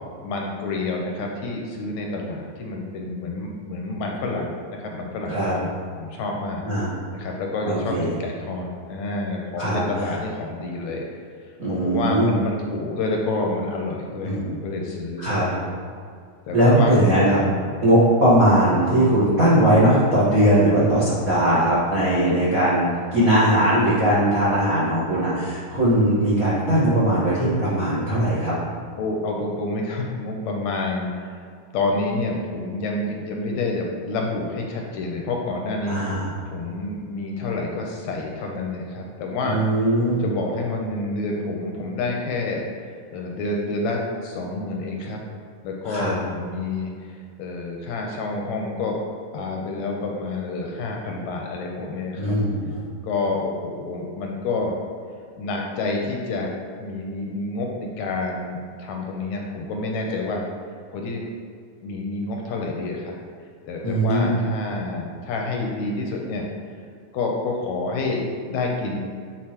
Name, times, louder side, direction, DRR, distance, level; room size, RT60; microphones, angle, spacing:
voice 1, 0.2-5.7 6.0-6.6 7.1-11.0 11.7-15.7 16.5-16.9 17.4-17.8 29.0-31.4 31.7-42.7 43.1-45.2 45.6-49.0 49.3-52.4 53.0-54.8 55.4-56.5 56.8-60.4 60.9-61.2 61.8-63.1 63.7-66.4 67.1-69.0, left 2 dB, 75° left, 0 dB, 1.8 m, -28 dB
voice 2, 7.6-8.1 9.6-9.8 11.6-12.4 14.2-14.5 15.2-15.5 16.5-17.4 17.8-28.5 35.9-36.3 39.4-40.3 45.9-46.1 52.2-52.8 63.8-64.4, right 1 dB, 85° right, -9 dB, 0.7 m, -19 dB
9.5 x 4.3 x 2.9 m, 2.2 s
omnidirectional pair, 3.6 m